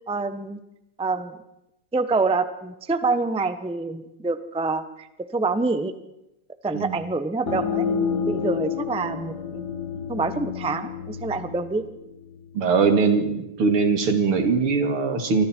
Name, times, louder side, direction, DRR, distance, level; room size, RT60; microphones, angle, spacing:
voice 1, 0.1-0.6 1.0-1.3 1.9-5.9 6.6-7.9 8.2-9.6 10.1-11.9, right 3 dB, 5° right, 10 dB, 0.6 m, -26 dB
sound 1, 7.5-12.9, left 6 dB, 50° left, 2.3 m, -29 dB
voice 2, 12.5-15.5, right 4 dB, 85° right, 6 dB, 3.3 m, -21 dB
28.5 x 24.5 x 4.6 m, 0.88 s
omnidirectional pair, 2.4 m